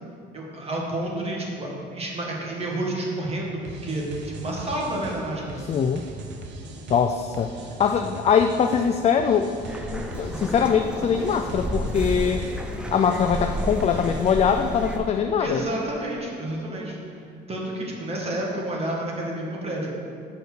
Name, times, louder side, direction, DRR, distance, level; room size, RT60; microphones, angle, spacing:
voice 1, 0.3-5.6 15.4-17.0 17.5-19.9, right 1 dB, 35° right, -2 dB, 1.8 m, -30 dB
sound 1, 3.6-14.7, right 2 dB, 75° right, 0.9 m, -40 dB
voice 2, 5.7-6.0 6.9-9.6 9.9-12.4 12.9-15.6, left 7 dB, 35° left, 6 dB, 0.4 m, -22 dB
sound 2, 9.6-15.0, equal, 5° right, 0.7 m, -31 dB
6.6 x 5.3 x 6.1 m, 2.4 s
cardioid pair, 105°, 19 cm